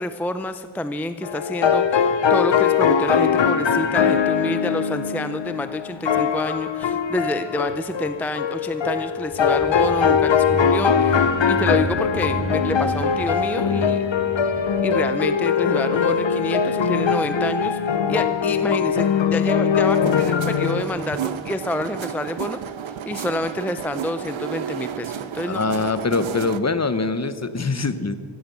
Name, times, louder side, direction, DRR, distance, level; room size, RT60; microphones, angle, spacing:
voice 1, 0.0-14.0 14.8-22.6 22.9-25.6, left 1 dB, 5° left, 10 dB, 0.4 m, -28 dB
sound 1, 1.2-20.8, left 7 dB, 65° left, 0.9 m, -21 dB
sound 2, 9.2-14.8, right 2 dB, 25° right, 1.1 m, -31 dB
sound 3, 19.8-26.6, right 9 dB, 70° right, 0.7 m, -32 dB
voice 2, 25.5-28.1, left 3 dB, 35° left, 12 dB, 0.8 m, -23 dB
15.5 x 12.5 x 6.8 m, 2.1 s
wide cardioid pair, 105°, 48 cm